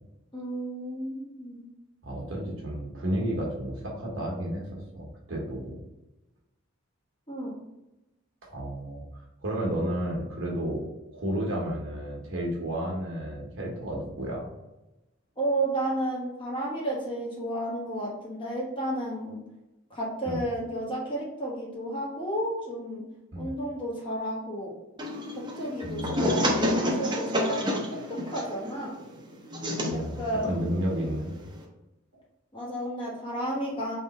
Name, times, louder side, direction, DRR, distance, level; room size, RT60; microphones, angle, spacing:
voice 1, 0.3-1.6 7.3-7.5 15.4-19.4 19.9-23.0 23.3-24.7 25.6-27.8 28.1-28.9 29.9-30.7 32.5-34.0, right 1 dB, 25° left, -4 dB, 1.2 m, -32 dB
voice 2, 2.0-4.6 4.9-5.7 8.5-9.0 9.4-10.9 11.1-14.5 20.3-20.4 23.3-23.5 25.8-26.6 29.9-31.4, right 1 dB, 65° right, -2 dB, 1.2 m, -32 dB
sound 1, 25.0-31.6, equal, 20° right, 0.7 m, -30 dB
3.6 x 3.1 x 4.1 m, 0.97 s
head